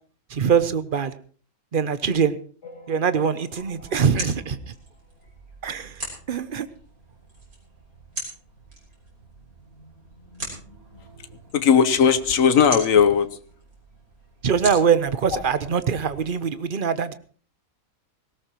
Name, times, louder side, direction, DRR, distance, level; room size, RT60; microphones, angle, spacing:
voice 1, 0.3-1.1 1.7-2.3 2.9-4.7 5.6-6.0 6.3-6.7 14.4-17.1, right 7 dB, 45° right, 13 dB, 0.8 m, -23 dB
sound 1, 2.6-5.5 6.0-6.1 6.2-6.4 6.7-6.8 7.6-7.7 8.2-8.3, left 2 dB, 50° left, 2.7 m, -49 dB
sound 2, 3.5-16.3, right 1 dB, 85° right, 5.8 m, -40 dB
voice 2, 11.5-13.3 15.3-15.4, left 7 dB, 70° left, 12 dB, 1.4 m, -17 dB
19.0 x 17.0 x 3.0 m, 0.44 s
omnidirectional pair, 1.5 m